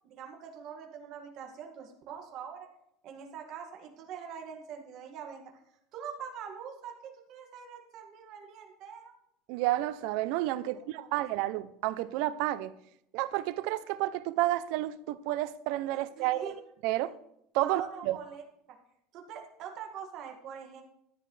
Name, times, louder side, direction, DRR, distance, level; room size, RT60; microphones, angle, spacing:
voice 1, 0.1-2.7 3.0-5.6 5.9-9.1 10.7-11.2 16.2-16.6 17.6-18.4 19.1-20.8, right 7 dB, 45° right, 2.1 m, -43 dB
voice 2, 9.5-12.7 13.1-16.5 16.8-17.1 17.5-18.2, right 15 dB, 60° right, 0.6 m, -30 dB
14.0 x 9.9 x 3.3 m
cardioid pair, 165°, 0 cm